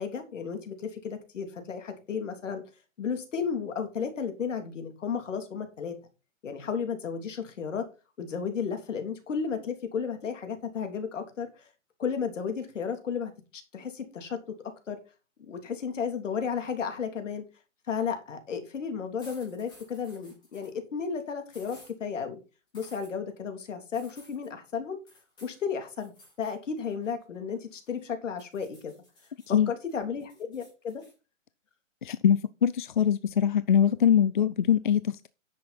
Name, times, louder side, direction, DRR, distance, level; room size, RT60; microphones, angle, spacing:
voice 1, 0.0-2.6 3.0-6.0 6.4-7.8 8.2-11.7 12.0-14.4 14.9-15.0 15.5-17.4 17.9-22.4 22.7-25.0 25.4-26.1 26.4-28.9 29.5-31.0, left 6 dB, 70° left, 3.2 m, -33 dB
sound 1, 19.2-20.8 21.5-21.9 22.7-23.1 23.9-24.5 25.1-25.6 26.0-26.6 26.9-28.0 28.4-29.5 29.9-31.1, left 1 dB, 10° left, 5.0 m, -56 dB
voice 2, 32.0-35.3, left 8 dB, 40° left, 0.4 m, -23 dB
10.5 x 7.6 x 4.3 m
hypercardioid pair, 160°, 39 cm